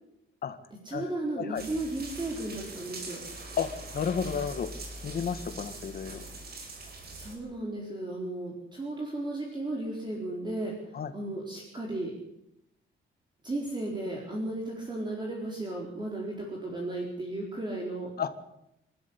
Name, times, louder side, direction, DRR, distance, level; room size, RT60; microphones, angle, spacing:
voice 1, 0.8-3.3 7.2-12.1 13.4-18.1, right 2 dB, 20° right, -2 dB, 4.4 m, -35 dB
sound 1, 1.6-7.3, right 2 dB, 50° right, 5.4 m, -42 dB
voice 2, 3.6-4.7 5.0-6.2 10.9-11.1 18.2-18.3, left 7 dB, 45° left, 10 dB, 1.8 m, -32 dB
27.0 x 13.0 x 8.6 m, 0.83 s
wide cardioid pair, 160°, 21 cm